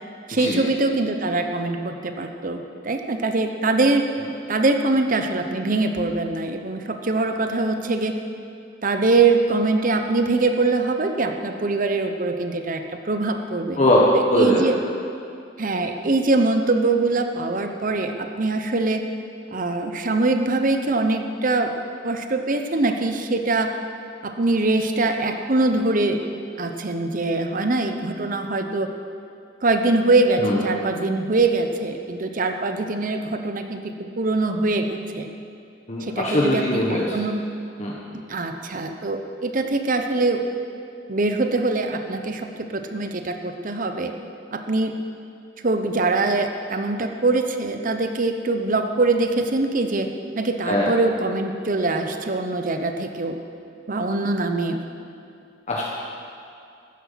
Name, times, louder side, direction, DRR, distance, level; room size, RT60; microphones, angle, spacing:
voice 1, 0.3-4.0 4.5-8.2 8.8-13.8 14.3-14.8 15.6-19.1 19.5-21.7 22.0-23.7 24.2-26.2 26.6-28.9 29.6-33.8 34.2-35.3 36.0-37.4 38.1-40.4 41.1-44.1 44.5-44.9 45.6-50.1 50.4-53.4 53.9-54.8, right 3 dB, 45° right, 6 dB, 0.9 m, -23 dB
voice 2, 14.3-14.7 30.4-30.6 35.9-37.2 37.8-37.9 50.6-50.9 55.7-55.8, left 1 dB, 35° left, -4 dB, 1.4 m, -21 dB
14.5 x 10.5 x 5.8 m, 2.5 s
head